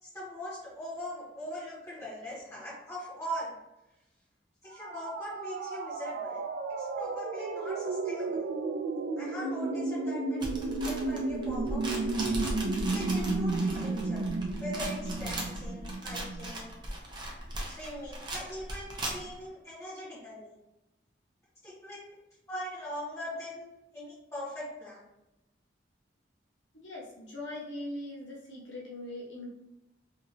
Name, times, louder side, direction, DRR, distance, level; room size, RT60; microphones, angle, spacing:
voice 1, 0.0-3.6 4.6-6.4 6.7-8.4 9.2-14.3 14.6-16.7 17.6-20.5 21.6-22.0 22.5-23.7 23.9-25.0, equal, 15° left, -9 dB, 1.4 m, -41 dB
sound 1, 4.7-16.5, right 3 dB, 70° right, 0.3 m, -33 dB
sound 2, 10.4-19.4, right 1 dB, 25° right, 0.5 m, -38 dB
voice 2, 26.8-29.5, left 1 dB, 90° left, -5 dB, 1.0 m, -41 dB
2.8 x 2.8 x 2.6 m, 0.92 s
head